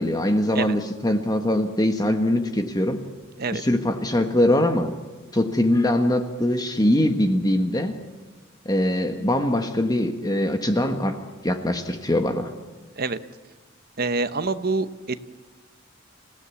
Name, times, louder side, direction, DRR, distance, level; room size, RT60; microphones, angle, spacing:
voice 1, 0.0-3.0 3.5-4.9 5.3-8.0 8.6-11.2 11.4-12.5, left 1 dB, 20° left, 6 dB, 1.4 m, -22 dB
voice 2, 14.0-15.2, right 3 dB, 50° right, 11 dB, 1.0 m, -26 dB
28.0 x 16.5 x 8.4 m, 1.3 s
head